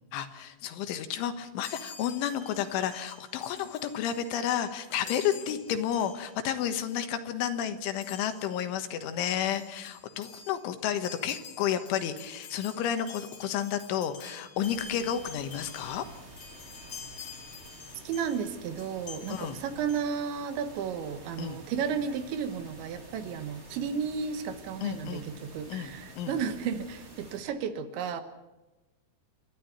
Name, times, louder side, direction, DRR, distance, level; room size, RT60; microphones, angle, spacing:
voice 1, 0.1-16.1 19.3-19.6 21.4-21.6 24.8-25.3 25.7-26.4, left 9 dB, 85° left, 8 dB, 3.8 m, -31 dB
Chime, 1.6-6.6 6.9-7.1 8.0-8.6 9.2-9.3 9.4-18.4 18.8-20.0, left 6 dB, 45° left, 3.1 m, -47 dB
sound 1, 14.6-27.4, right 1 dB, 20° right, 1.8 m, -50 dB
voice 2, 18.0-28.2, right 7 dB, 75° right, 9 dB, 3.5 m, -33 dB
28.5 x 12.5 x 9.5 m, 1.1 s
omnidirectional pair, 5.5 m